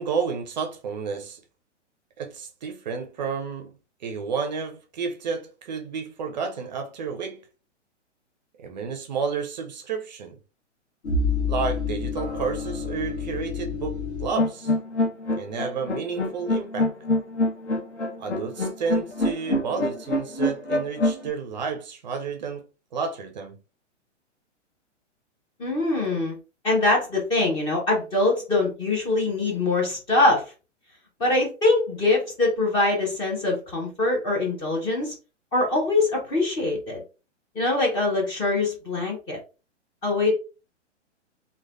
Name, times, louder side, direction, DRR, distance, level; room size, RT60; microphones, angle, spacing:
voice 1, 0.0-1.4 2.2-7.4 8.6-10.4 11.4-14.7 15.4-16.9 18.2-22.7 22.9-23.6, right 5 dB, 40° right, 0.5 m, -31 dB
sound 1, 11.0-21.3, left 2 dB, 65° left, 0.9 m, -26 dB
voice 2, 25.6-26.4 26.6-30.5 31.2-35.1 35.5-37.0 37.6-39.4 40.0-40.3, left 2 dB, 15° left, 0.5 m, -23 dB
3.1 x 2.1 x 2.4 m
figure-of-eight pair, 115°, 37 cm